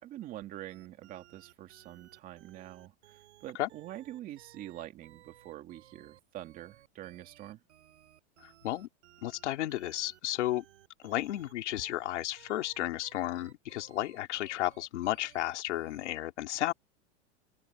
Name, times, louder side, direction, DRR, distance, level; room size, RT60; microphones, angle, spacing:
voice 1, 0.0-7.6, right 14 dB, 25° right, 2.4 m, -45 dB
sound 1, 0.7-16.1, right 13 dB, 80° right, 7.5 m, -59 dB
voice 2, 8.4-8.9 9.2-10.6 11.0-16.7, left 14 dB, 80° left, 2.8 m, -33 dB
supercardioid pair, 170°, 35 cm